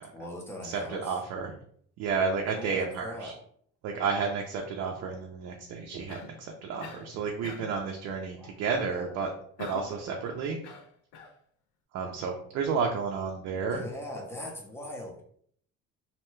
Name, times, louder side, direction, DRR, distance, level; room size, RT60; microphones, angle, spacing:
voice 1, 0.0-1.1 2.6-3.4 8.4-8.6 8.9-9.1 13.5-15.2, left 1 dB, 10° left, 0 dB, 0.5 m, -41 dB
voice 2, 0.6-1.5 2.0-3.3 3.8-9.3 9.6-10.7 11.9-13.8, right 5 dB, 60° right, 1 dB, 0.5 m, -31 dB
Cough, 6.1-6.4 6.8-7.1 7.4-7.8 9.6-10.0 10.6-11.4, left 6 dB, 80° left, 0.5 m, -44 dB
2.7 x 2.1 x 3.0 m, 0.62 s
cardioid pair, 155°, 29 cm